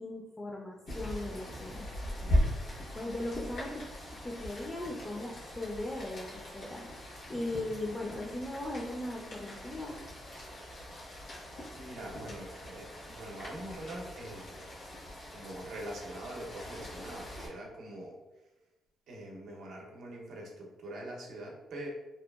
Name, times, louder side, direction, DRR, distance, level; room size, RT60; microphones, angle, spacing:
voice 1, 0.0-1.9 2.9-3.8 4.2-6.9 7.3-10.0, left 1 dB, 20° left, -1 dB, 0.3 m, -38 dB
Rain, 0.9-17.5, equal, 80° left, 1.0 m, -39 dB
voice 2, 11.8-14.7 15.3-18.2 19.1-21.9, right 1 dB, 75° right, -1 dB, 0.6 m, -44 dB
2.8 x 2.3 x 2.2 m, 1.1 s
cardioid pair, 90°, 0 cm